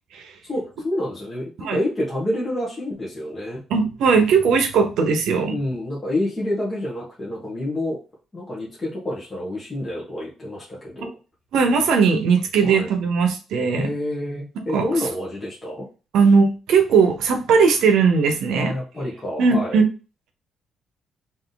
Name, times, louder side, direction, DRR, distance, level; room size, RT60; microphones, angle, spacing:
voice 1, 0.4-3.6 5.5-8.0 8.3-11.1 12.6-12.9 13.7-15.8 18.5-19.8, left 1 dB, 20° left, -6 dB, 1.2 m, -28 dB
voice 2, 3.7-5.5 11.5-13.9 14.7-14.9 16.1-18.7 19.4-19.8, right 5 dB, 80° right, 6 dB, 0.9 m, -18 dB
3.5 x 2.7 x 3.9 m, 0.33 s
cardioid pair, 125°, 0 cm